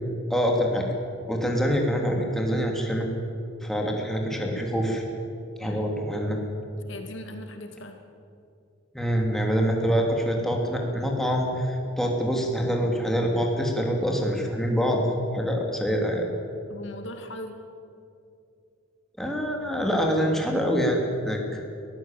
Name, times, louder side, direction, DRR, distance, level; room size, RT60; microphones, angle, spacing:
voice 1, 0.3-0.9 1.3-3.1 3.6-5.0 5.6-6.4 8.9-15.0 15.3-16.2 19.2-21.6, equal, ahead, 0 dB, 2.9 m, -25 dB
voice 2, 5.6-5.9 6.9-8.0 16.7-17.6, left 1 dB, 65° left, 5 dB, 2.2 m, -39 dB
22.5 x 15.0 x 9.2 m, 2.5 s
head